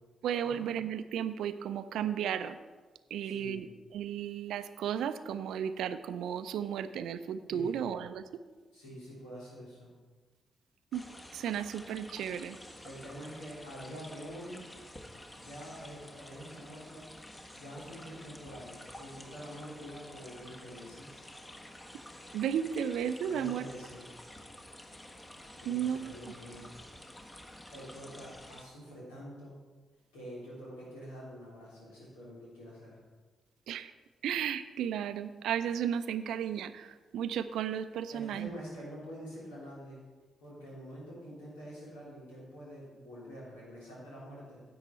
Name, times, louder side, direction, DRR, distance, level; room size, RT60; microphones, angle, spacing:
voice 1, 0.2-2.6 3.1-3.7 3.9-8.2 10.9-11.0 11.3-12.6 22.3-23.6 25.7-26.1 33.7-33.9 34.2-38.5, right 9 dB, 75° right, 12 dB, 0.4 m, -34 dB
voice 2, 3.2-3.7 7.5-7.8 8.7-9.9 12.8-14.7 15.3-17.2 17.5-21.2 23.2-24.2 25.6-26.7 27.7-29.6 30.1-33.0 38.1-40.0 40.4-44.6, equal, 90° left, -6 dB, 3.1 m, -46 dB
sound 1, 10.9-28.6, left 1 dB, 25° left, 1.5 m, -50 dB
10.5 x 7.9 x 4.4 m, 1.4 s
hypercardioid pair, 40°, 0 cm